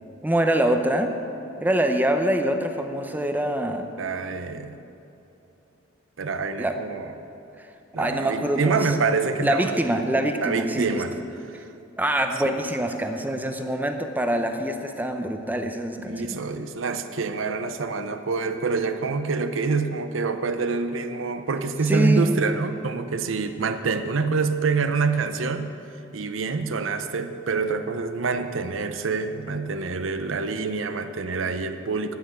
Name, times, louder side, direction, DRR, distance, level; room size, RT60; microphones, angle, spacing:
voice 1, 0.2-1.1 1.6-3.9 6.6-6.8 8.0-8.9 9.4-11.0 12.0-16.4 21.9-22.4, right 1 dB, 10° right, 5 dB, 0.6 m, -24 dB
voice 2, 4.0-4.8 6.2-7.1 7.9-9.8 10.4-11.1 11.5-11.6 12.4-12.5 16.0-25.7 26.1-32.2, right 4 dB, 70° right, 9 dB, 0.6 m, -26 dB
9.5 x 8.7 x 8.1 m, 2.8 s
head